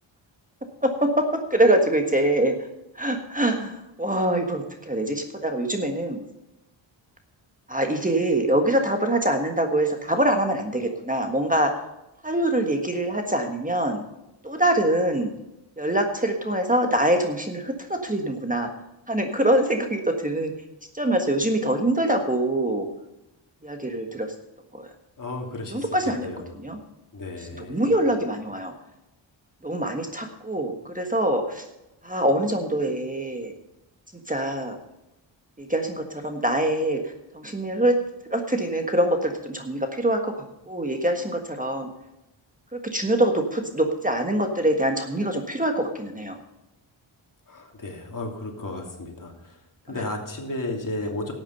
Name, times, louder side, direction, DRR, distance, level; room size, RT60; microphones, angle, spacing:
voice 1, 0.8-1.2 1.5-2.5 2.9-6.2 7.7-11.7 12.2-14.0 14.4-15.3 15.8-18.7 19.1-20.5 20.9-22.9 23.6-24.3 24.7-24.9 25.7-26.3 26.6-26.8 27.7-28.7 29.6-31.6 32.0-33.5 34.3-34.8 35.6-37.9 38.3-41.9 42.7-46.4 49.9-50.0, right 1 dB, 15° right, 4 dB, 1.6 m, -24 dB
voice 2, 25.2-26.6 27.1-27.8 47.5-49.6 49.8-51.3, left 2 dB, 40° left, 1 dB, 3.0 m, -33 dB
12.5 x 8.9 x 5.5 m, 0.93 s
cardioid pair, 80°, 49 cm